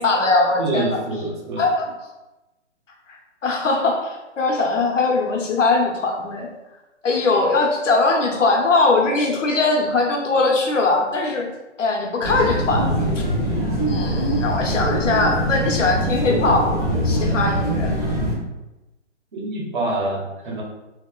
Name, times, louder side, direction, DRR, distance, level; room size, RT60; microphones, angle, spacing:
voice 1, 0.0-1.0 1.6-1.9 3.1-6.5 7.0-11.5 11.8-12.9 13.9-17.9, left 3 dB, 85° left, 0 dB, 0.8 m, -20 dB
voice 2, 0.6-1.6 19.3-20.6, right 2 dB, 40° right, -3 dB, 0.6 m, -26 dB
sound 1, 12.2-18.3, equal, 15° left, 0.4 m, -22 dB
2.9 x 2.1 x 2.2 m, 1.0 s
hypercardioid pair, 150°, 36 cm